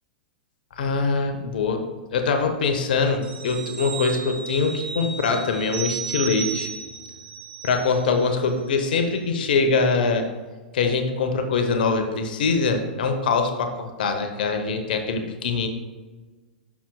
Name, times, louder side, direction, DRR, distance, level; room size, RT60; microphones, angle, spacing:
voice 1, 0.8-1.9 2.1-6.7 7.6-10.3 10.7-15.7, left 4 dB, 70° left, 6 dB, 0.9 m, -23 dB
sound 1, 3.2-8.3 8.7-8.8, right 6 dB, 80° right, 2.5 m, -34 dB
11.5 x 6.0 x 2.3 m, 1.3 s
hypercardioid pair, 100°, 5 cm